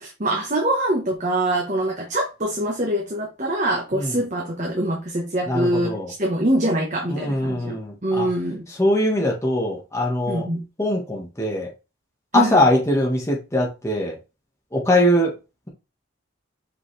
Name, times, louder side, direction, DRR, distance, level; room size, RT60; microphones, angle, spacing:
voice 1, 0.0-5.9 6.2-8.7 10.3-10.6 12.3-12.6, right 1 dB, 35° right, 1.2 m, -24 dB
voice 2, 5.5-6.1 7.1-8.3 8.7-10.4 10.8-11.7 12.3-14.2 14.7-15.3, left 1 dB, 15° left, 1.5 m, -22 dB
5.5 x 5.4 x 3.3 m
head